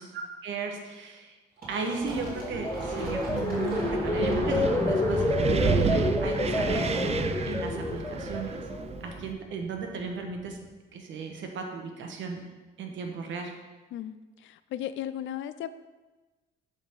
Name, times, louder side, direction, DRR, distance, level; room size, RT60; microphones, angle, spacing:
voice 1, 0.0-1.3 1.7-7.2 7.4-8.6 9.0-10.6 10.9-12.4 12.8-13.5, right 4 dB, 75° right, 3 dB, 1.1 m, -35 dB
Fill (with liquid), 1.6-7.0, right 2 dB, 50° right, 2.3 m, -40 dB
Wind, 2.0-9.3, right 6 dB, 30° right, 0.4 m, -32 dB
sound 1, 2.1-9.2 9.6-10.0, left 2 dB, 10° left, 0.7 m, -29 dB
voice 2, 14.4-15.7, left 11 dB, 75° left, 13 dB, 0.4 m, -35 dB
7.0 x 3.7 x 5.5 m, 1.2 s
cardioid pair, 90°, 20 cm